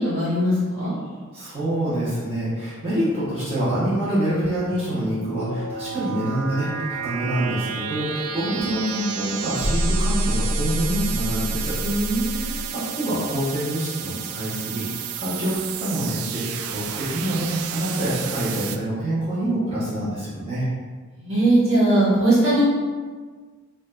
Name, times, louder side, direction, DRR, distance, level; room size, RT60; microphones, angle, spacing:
voice 1, 0.0-0.9 11.8-12.7 21.2-22.6, right 1 dB, 65° right, -9 dB, 1.4 m, -20 dB
voice 2, 1.1-11.8 12.3-14.8 15.2-20.7, right 1 dB, 30° right, -12 dB, 1.2 m, -26 dB
sound 1, 4.7-18.8, right 7 dB, 85° right, 0.3 m, -32 dB
sound 2, 9.6-12.7, equal, 35° left, 0.6 m, -26 dB
5.1 x 2.5 x 2.6 m, 1.5 s
head